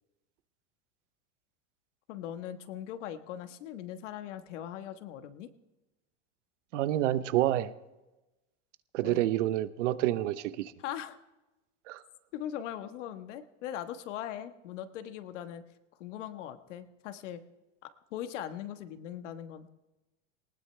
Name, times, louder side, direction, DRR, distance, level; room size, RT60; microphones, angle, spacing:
voice 1, 2.1-5.5 9.0-9.3 10.8-11.2 12.3-15.6 16.0-17.4 18.1-19.7, left 10 dB, 85° left, 9 dB, 1.5 m, -40 dB
voice 2, 6.7-7.7 8.9-10.7 11.9-12.0, right 14 dB, 90° right, 14 dB, 1.0 m, -28 dB
19.5 x 19.0 x 3.4 m, 1.0 s
supercardioid pair, 165°, 36 cm